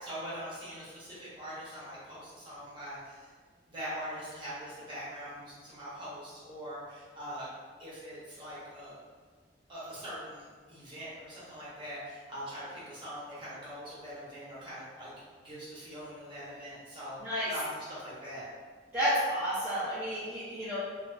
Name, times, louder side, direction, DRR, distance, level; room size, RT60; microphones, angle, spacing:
voice 1, 0.0-3.3 3.7-7.5 7.8-9.0 9.7-18.5, equal, 25° right, -10 dB, 1.0 m, -42 dB
voice 2, 18.9-20.8, equal, 10° right, -14 dB, 0.6 m, -31 dB
2.8 x 2.5 x 2.3 m, 1.5 s
head